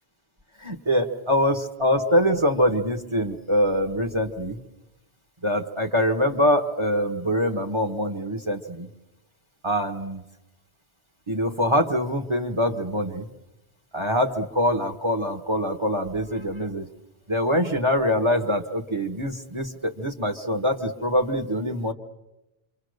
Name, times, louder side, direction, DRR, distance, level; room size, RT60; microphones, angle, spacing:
voice 1, 0.6-4.6 5.4-8.9 9.6-10.2 11.3-13.3 13.9-16.9 17.3-21.9, equal, 30° right, 5 dB, 1.3 m, -24 dB
27.5 x 24.5 x 6.6 m, 0.94 s
omnidirectional pair, 1.1 m